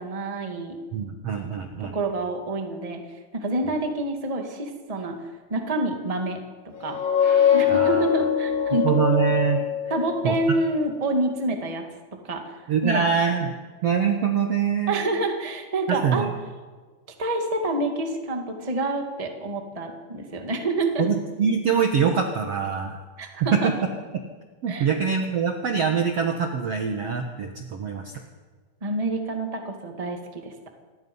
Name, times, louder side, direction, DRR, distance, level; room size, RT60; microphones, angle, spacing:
voice 1, 0.0-0.8 1.9-3.0 3.3-5.2 5.5-6.4 6.8-7.0 7.5-8.9 9.9-13.0 14.9-16.3 17.2-21.1 23.2-23.7 24.7-24.9 28.8-30.5, right 2 dB, 15° right, 3 dB, 1.4 m, -27 dB
voice 2, 0.9-2.0 7.7-8.1 8.8-9.6 10.2-10.4 12.7-13.5 13.8-15.0 15.9-16.3 21.0-23.0 23.5-23.6 24.6-28.1, right 6 dB, 60° right, 4 dB, 1.7 m, -24 dB
sound 1, 6.8-10.3, left 9 dB, 85° left, 7.6 m, -22 dB
27.0 x 21.0 x 5.6 m, 1.4 s
omnidirectional pair, 4.5 m